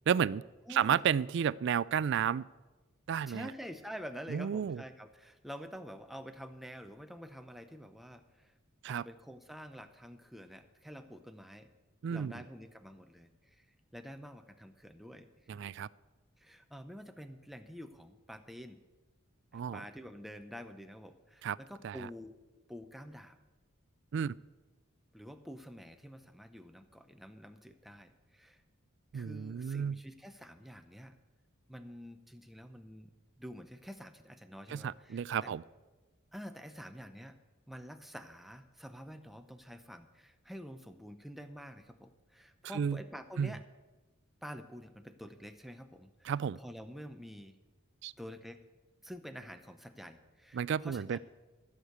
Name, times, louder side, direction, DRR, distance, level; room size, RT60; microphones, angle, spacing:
voice 1, 0.1-0.4 0.7-2.5 3.1-3.5 4.3-4.8 8.8-9.0 12.0-12.4 15.5-15.9 19.5-19.8 21.4-21.6 21.8-22.0 24.1-24.3 29.1-30.0 34.7-35.6 42.7-43.0 43.4-43.5 46.2-46.6 48.0-48.1 50.5-51.2, right 8 dB, 55° right, 20 dB, 0.3 m, -32 dB
voice 2, 0.7-1.1 3.3-8.5 8.9-11.7 12.1-13.7 13.9-15.3 16.4-18.8 19.5-23.4 25.1-28.6 29.1-31.2 31.7-33.1 33.4-35.5 36.3-37.4 37.7-43.6 44.4-47.6 48.2-48.6 49.0-51.2, equal, ahead, 7 dB, 0.7 m, -48 dB
13.5 x 6.5 x 8.0 m, 1.2 s
head